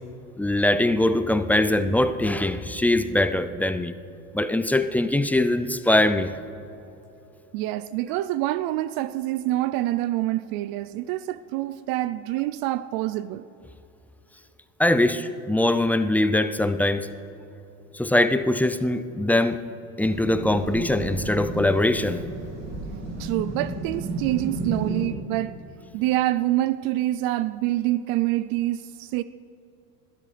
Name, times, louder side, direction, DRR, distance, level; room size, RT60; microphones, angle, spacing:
voice 1, 0.4-3.9 4.3-6.3 14.8-17.1 17.9-19.6 20.0-22.2, left 1 dB, 5° left, 10 dB, 0.4 m, -22 dB
voice 2, 7.5-13.5 23.2-25.6 25.9-29.2, right 15 dB, 55° right, 16 dB, 0.5 m, -26 dB
sound 1, 20.0-25.1, right 3 dB, 35° right, 2.7 m, -32 dB
21.0 x 12.5 x 3.3 m, 3.0 s
hypercardioid pair, 90°, 43 cm